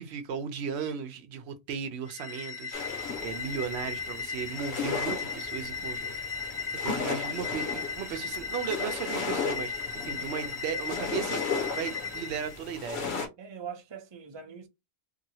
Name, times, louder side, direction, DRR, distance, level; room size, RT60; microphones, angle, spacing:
voice 1, 0.0-6.1 6.8-13.0, right 7 dB, 90° right, 0.9 m, -36 dB
sound 1, 2.1-12.6, left 5 dB, 25° left, 1.1 m, -36 dB
sound 2, 2.7-13.3, left 5 dB, 80° left, 1.1 m, -36 dB
voice 2, 13.4-14.7, right 7 dB, 35° right, 0.5 m, -42 dB
2.8 x 2.7 x 2.7 m
omnidirectional pair, 1.1 m